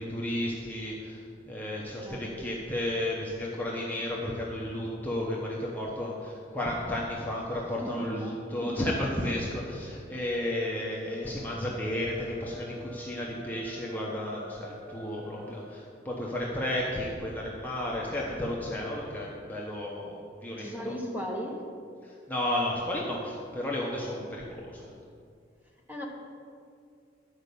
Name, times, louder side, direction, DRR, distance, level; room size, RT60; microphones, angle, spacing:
voice 1, 0.0-20.9 22.0-24.9, left 1 dB, 10° left, -4 dB, 1.0 m, -33 dB
voice 2, 2.0-2.5 7.8-8.1 8.6-8.7 20.6-21.7 25.9-26.1, equal, 10° right, 0 dB, 1.3 m, -36 dB
sound 1, 10.5-15.8, equal, 70° right, 1.6 m, -47 dB
11.0 x 5.2 x 6.8 m, 2.3 s
head